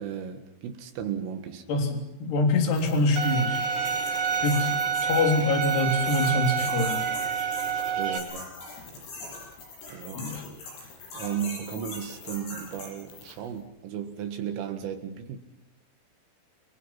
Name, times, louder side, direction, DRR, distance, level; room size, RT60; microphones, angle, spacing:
voice 1, 0.0-1.7 7.9-8.6 9.9-10.3 11.1-15.4, right 9 dB, 80° right, 6 dB, 4.3 m, -35 dB
voice 2, 1.7-3.6 4.4-4.7 5.0-7.1 10.2-10.5, left 2 dB, 55° left, 4 dB, 5.4 m, -25 dB
sound 1, 2.6-13.5, left 3 dB, 90° left, 11.0 m, -42 dB
Bowed string instrument, 3.2-8.2, right 6 dB, 60° right, 4.8 m, -28 dB
29.5 x 26.0 x 5.9 m, 0.86 s
omnidirectional pair, 5.8 m